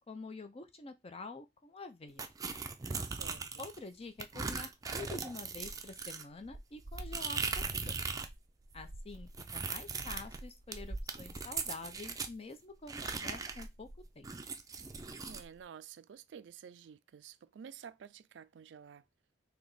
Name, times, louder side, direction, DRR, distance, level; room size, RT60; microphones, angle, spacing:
voice 1, 0.1-2.3 3.6-8.0 8.7-13.9 14.2-14.3, left 3 dB, 35° left, 0.6 m, -47 dB
sound 1, 2.2-3.8 4.2-8.3 8.6-12.3 12.9-15.4, right 4 dB, 20° right, 0.4 m, -39 dB
voice 2, 2.8-3.7 15.3-19.1, right 7 dB, 80° right, 0.4 m, -51 dB
3.3 x 2.8 x 4.0 m
head